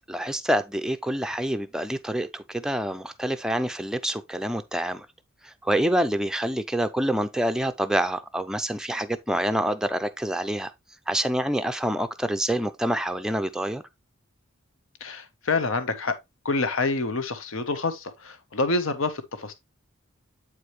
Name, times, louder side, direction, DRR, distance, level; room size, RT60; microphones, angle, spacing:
voice 1, 0.1-5.1 5.4-10.7 11.1-13.8, right 1 dB, 5° right, 0.5 m, -27 dB
voice 2, 15.0-16.2 16.4-19.5, left 3 dB, 70° left, 1.1 m, -27 dB
8.4 x 4.8 x 3.2 m
head